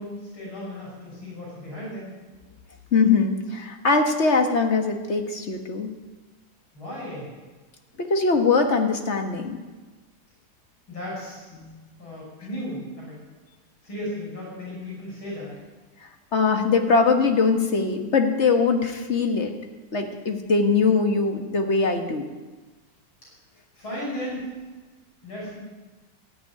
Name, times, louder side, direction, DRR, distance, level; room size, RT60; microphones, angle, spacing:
voice 1, 0.0-2.1 6.7-7.3 10.9-11.5 12.0-13.2 13.8-15.6 23.7-24.5 25.2-25.6, left 1 dB, 80° left, -4 dB, 7.0 m, -35 dB
voice 2, 2.9-5.9 8.0-9.6 11.6-11.8 16.3-19.5 19.9-22.3, left 4 dB, 35° left, 5 dB, 1.7 m, -22 dB
13.5 x 10.5 x 9.8 m, 1.3 s
omnidirectional pair, 2.3 m